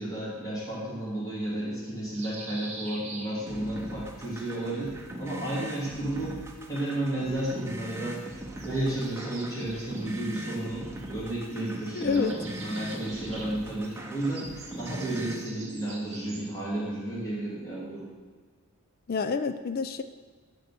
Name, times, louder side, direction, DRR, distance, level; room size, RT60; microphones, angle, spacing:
voice 1, 0.0-6.4 6.7-8.3 8.6-14.5 14.8-18.1, right 1 dB, 15° left, -8 dB, 3.1 m, -32 dB
sound 1, 2.1-3.9 5.3-6.3 8.3-11.3 11.5-16.7, right 2 dB, 30° right, 1.6 m, -46 dB
sound 2, 3.5-15.5, right 1 dB, 10° right, 0.7 m, -41 dB
voice 2, 12.0-12.3 19.1-20.0, left 5 dB, 40° left, 11 dB, 0.4 m, -28 dB
12.5 x 4.4 x 6.0 m, 1.5 s
head